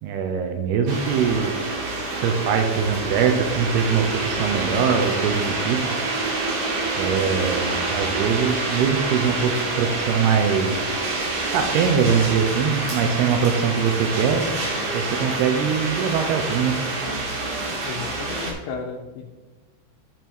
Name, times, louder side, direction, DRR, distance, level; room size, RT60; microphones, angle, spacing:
voice 1, 0.0-1.6 2.2-5.8 7.0-10.8 11.5-14.4 14.9-16.8, right 6 dB, 85° right, 5 dB, 2.3 m, -22 dB
sound 1, 0.9-18.5, right 2 dB, 70° right, 4.1 m, -27 dB
voice 2, 17.8-19.3, left 5 dB, 85° left, -2 dB, 3.2 m, -34 dB
9.1 x 5.4 x 4.6 m, 1.3 s
omnidirectional pair, 5.3 m